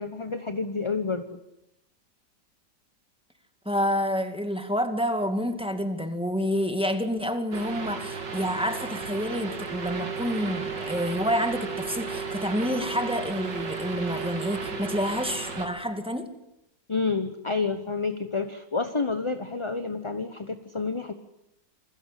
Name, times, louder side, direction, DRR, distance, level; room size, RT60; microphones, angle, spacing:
voice 1, 0.0-1.4 16.9-21.1, left 4 dB, 20° left, 9 dB, 0.9 m, -29 dB
voice 2, 3.7-16.3, equal, 5° right, 7 dB, 2.1 m, -28 dB
sound 1, 7.5-15.7, right 5 dB, 70° right, 3.1 m, -34 dB
28.0 x 21.0 x 8.4 m, 0.88 s
omnidirectional pair, 1.9 m